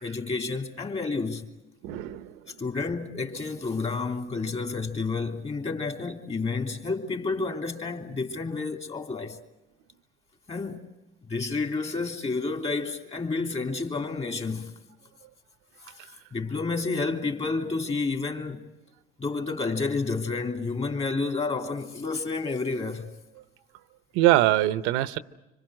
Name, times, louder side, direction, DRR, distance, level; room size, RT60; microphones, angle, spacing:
voice 1, 0.0-1.5 2.6-9.4 10.5-10.8 11.3-14.7 16.3-18.6 19.2-23.1, left 4 dB, 30° left, 3.2 m, -30 dB
voice 2, 1.8-2.3 24.1-25.2, right 15 dB, 85° right, 0.9 m, -22 dB
26.0 x 25.5 x 6.5 m
supercardioid pair, 95°, 20 cm